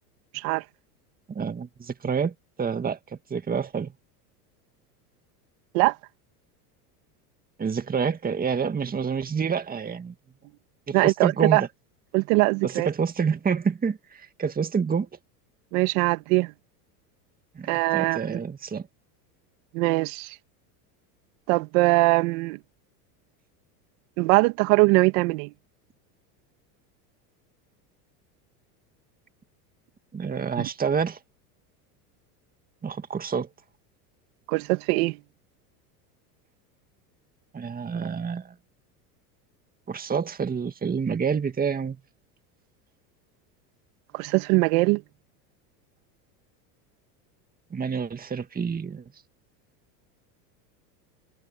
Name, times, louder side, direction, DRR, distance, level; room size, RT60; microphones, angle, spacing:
voice 1, 1.3-3.9 7.6-10.1 10.9-11.7 12.6-15.1 17.6-18.9 30.1-31.2 32.8-33.5 37.5-38.5 39.9-42.0 47.7-49.0, right 6 dB, 20° right, 2.0 m, -28 dB
voice 2, 10.9-11.6 12.1-12.9 15.7-16.5 17.7-18.4 19.7-20.4 21.5-22.6 24.2-25.5 30.6-30.7 34.5-35.2 44.1-45.0, right 25 dB, 65° right, 2.2 m, -22 dB
supercardioid pair, 110°, 47 cm